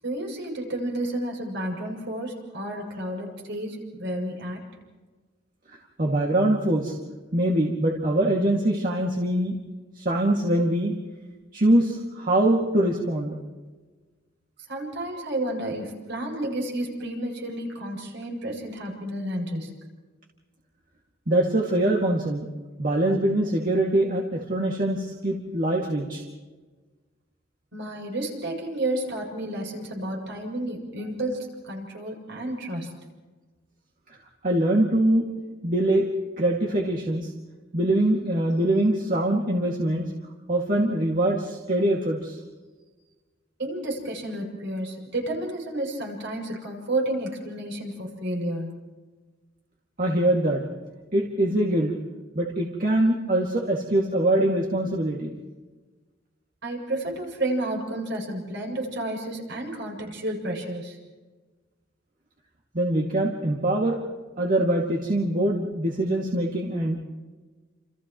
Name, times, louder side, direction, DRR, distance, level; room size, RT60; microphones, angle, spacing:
voice 1, 0.0-4.6 14.7-19.7 27.7-32.9 43.6-48.8 56.6-61.0, right 1 dB, 65° right, -1 dB, 7.3 m, -31 dB
voice 2, 5.7-6.9 7.3-9.6 10.0-10.9 11.5-13.3 21.3-22.4 22.8-26.2 34.4-35.3 35.6-36.0 36.4-37.3 37.7-40.1 40.5-42.4 50.0-50.6 51.1-51.9 52.3-55.3 62.7-64.0 64.4-67.0, right 1 dB, 45° right, -1 dB, 2.3 m, -23 dB
30.0 x 28.0 x 3.1 m, 1.3 s
head